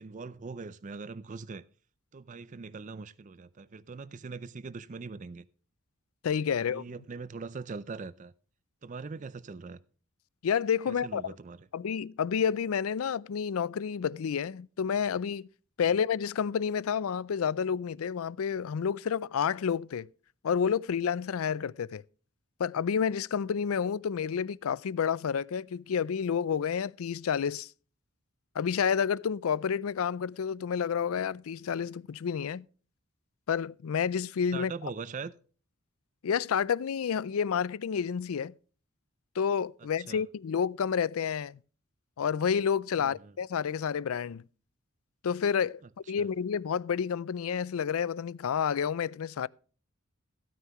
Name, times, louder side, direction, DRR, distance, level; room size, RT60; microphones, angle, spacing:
voice 1, 0.0-1.6 2.1-5.5 6.6-8.3 8.8-9.8 10.9-11.7 34.5-35.3 40.1-40.2 43.0-43.3 46.1-46.3, right 4 dB, 35° right, 0.4 m, -41 dB
voice 2, 6.2-6.8 10.4-11.3 11.7-15.5 15.8-20.1 20.4-22.0 22.6-27.7 28.6-32.6 33.5-34.7 36.2-38.5 39.4-41.6 42.2-44.4 45.2-45.8 46.1-49.5, left 7 dB, 85° left, 0.4 m, -29 dB
16.0 x 9.3 x 3.0 m
head